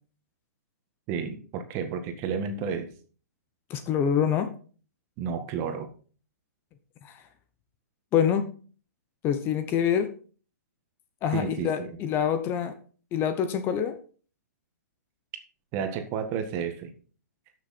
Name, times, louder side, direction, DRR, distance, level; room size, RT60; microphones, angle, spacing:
voice 1, 1.1-2.9 5.2-5.9 11.3-11.9 15.7-16.9, right 6 dB, 30° right, 7 dB, 1.7 m, -31 dB
voice 2, 3.7-4.5 7.0-7.1 8.1-8.5 9.2-10.1 11.2-12.7 13.1-13.9, left 8 dB, 25° left, 10 dB, 0.9 m, -25 dB
13.0 x 6.5 x 4.3 m, 0.40 s
hypercardioid pair, 150°, 9 cm